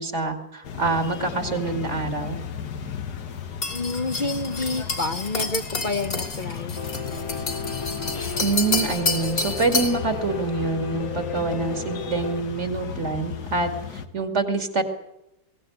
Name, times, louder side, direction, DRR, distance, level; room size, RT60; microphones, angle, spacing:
voice 1, 0.0-2.4 8.4-14.8, right 3 dB, 45° right, 7 dB, 2.6 m, -26 dB
sound 1, 0.6-14.1, left 7 dB, 85° left, 1.9 m, -35 dB
sound 2, 3.6-10.0, left 3 dB, 65° left, 3.6 m, -29 dB
voice 2, 3.7-6.8, left 2 dB, 35° left, 9 dB, 0.9 m, -29 dB
Piano, 6.8-12.4, left 4 dB, 20° left, 1.2 m, -34 dB
22.5 x 17.5 x 9.3 m, 0.92 s
omnidirectional pair, 1.7 m